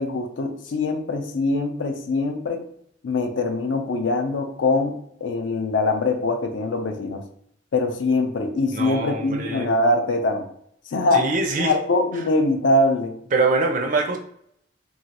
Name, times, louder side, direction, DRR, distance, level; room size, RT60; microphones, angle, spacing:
voice 1, 0.0-2.6 3.0-5.0 5.2-7.2 7.7-10.5 10.9-11.3 11.5-13.2, left 2 dB, 75° left, 5 dB, 0.4 m, -23 dB
voice 2, 8.7-9.7 11.1-11.7 13.3-14.2, right 3 dB, 40° right, 4 dB, 0.4 m, -23 dB
3.0 x 2.3 x 2.8 m, 0.68 s
head